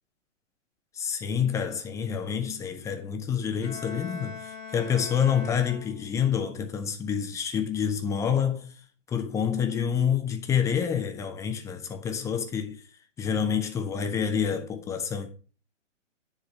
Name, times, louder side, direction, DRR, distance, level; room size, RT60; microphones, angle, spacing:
voice 1, 0.9-8.7 9.1-12.8 13.2-15.3, left 7 dB, 10° left, 0.6 m, -28 dB
Bowed string instrument, 3.6-6.3, left 5 dB, 90° left, 1.8 m, -41 dB
10.5 x 3.7 x 5.5 m
figure-of-eight pair, 130°, 37 cm